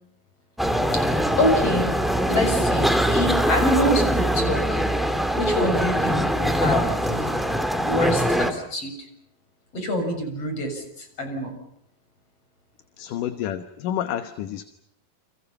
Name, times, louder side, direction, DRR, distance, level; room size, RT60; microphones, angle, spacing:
sound 1, 0.6-8.5, equal, ahead, 1.9 m, -22 dB
voice 1, 1.4-1.9 2.3-4.8 5.3-7.4 7.8-8.9 9.7-11.6, left 1 dB, 45° left, 5 dB, 7.9 m, -26 dB
voice 2, 13.0-14.6, left 11 dB, 75° left, 10 dB, 2.8 m, -29 dB
30.0 x 28.5 x 5.7 m, 0.71 s
omnidirectional pair, 3.9 m